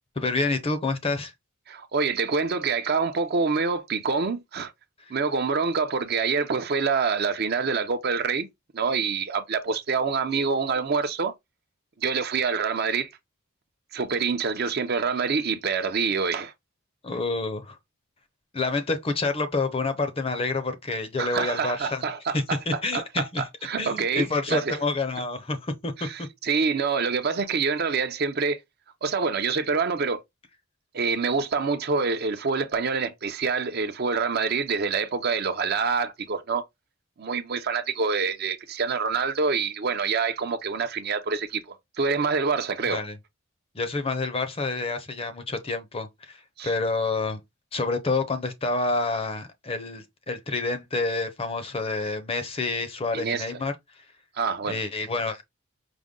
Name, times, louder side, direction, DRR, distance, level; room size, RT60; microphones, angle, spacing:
voice 1, 0.2-1.3 17.0-17.8 18.5-22.0 22.3-23.4 23.8-26.3 42.9-43.2 43.7-47.4 47.7-53.7 54.7-55.4, left 3 dB, 25° left, 0.6 m, -28 dB
voice 2, 1.7-4.7 5.1-8.5 8.7-11.3 12.0-13.1 13.9-16.5 21.2-22.6 22.9-24.8 26.0-28.6 29.0-30.2 30.9-36.6 37.2-43.0 46.6-46.7 53.1-53.5 54.4-54.8, right 5 dB, 45° right, 0.5 m, -26 dB
5.0 x 2.2 x 3.6 m
head